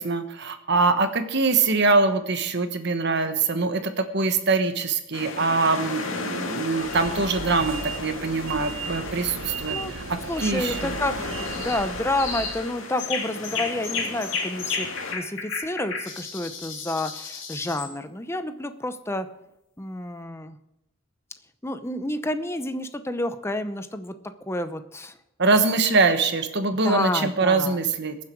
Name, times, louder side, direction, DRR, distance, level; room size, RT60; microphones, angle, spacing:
voice 1, 0.0-9.8 10.4-10.9 25.4-28.2, right 3 dB, 60° right, 8 dB, 1.3 m, -23 dB
sound 1, 5.1-15.1, left 3 dB, 85° left, 2.0 m, -35 dB
sound 2, 6.8-12.7, right 4 dB, 80° right, 1.0 m, -36 dB
voice 2, 10.3-14.9 15.1-19.3 19.8-20.6 21.6-24.1 24.4-25.1 26.8-27.8, left 1 dB, 15° left, 9 dB, 0.7 m, -29 dB
sound 3, 11.4-11.8 12.2-12.6 13.0-17.9, left 5 dB, 70° left, 2.8 m, -32 dB
22.0 x 7.4 x 4.7 m, 0.85 s
head